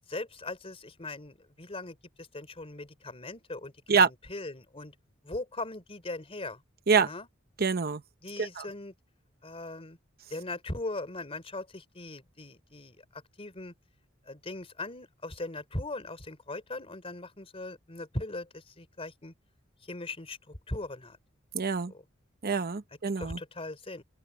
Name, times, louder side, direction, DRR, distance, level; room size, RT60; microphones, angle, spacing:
voice 1, 0.1-4.9 5.2-6.6 7.0-7.3 8.2-8.9 9.4-10.0 10.3-13.7 14.3-19.3 19.9-21.2 21.9-22.0 23.2-24.0, left 2 dB, 30° left, 3.6 m, -39 dB
voice 2, 7.6-8.0 8.4-8.6 21.5-21.9 22.4-23.4, right 5 dB, 50° right, 0.8 m, -25 dB
open air
head